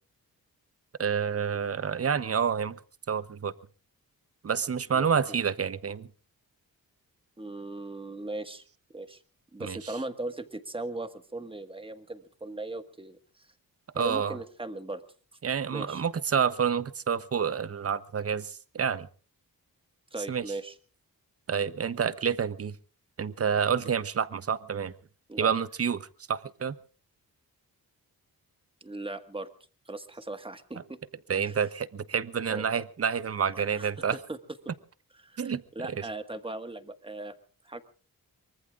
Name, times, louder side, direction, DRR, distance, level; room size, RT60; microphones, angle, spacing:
voice 1, 1.0-2.8 3.1-3.5 4.4-6.1 9.6-9.8 13.9-14.4 15.4-19.1 20.3-20.5 21.5-22.8 23.2-24.9 25.4-26.7 31.3-34.2 35.4-35.6 35.9-36.0, right 7 dB, 40° right, 15 dB, 0.9 m, -28 dB
voice 2, 7.4-8.6 8.9-9.2 9.5-13.5 13.9-15.0 15.7-16.0 20.1-20.7 25.3-25.5 28.8-29.5 29.9-31.0 31.4-31.6 32.5-32.8 33.5-34.4 35.2-37.3 37.6-37.8, right 2 dB, 15° right, 9 dB, 1.6 m, -38 dB
24.0 x 23.5 x 2.5 m, 0.38 s
wide cardioid pair, 135°, 36 cm